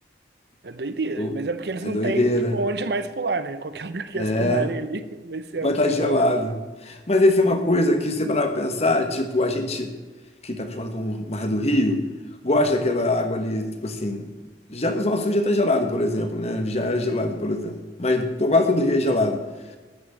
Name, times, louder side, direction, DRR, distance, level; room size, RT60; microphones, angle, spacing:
voice 1, 0.6-6.3 7.5-7.6 18.6-18.8, right 3 dB, 65° right, 11 dB, 0.8 m, -29 dB
voice 2, 1.8-2.6 4.1-4.7 5.6-6.5 6.8-9.9 10.4-12.0 12.4-14.3 14.7-19.4, left 1 dB, 35° left, 6 dB, 1.3 m, -22 dB
12.5 x 6.2 x 8.2 m, 1.3 s
head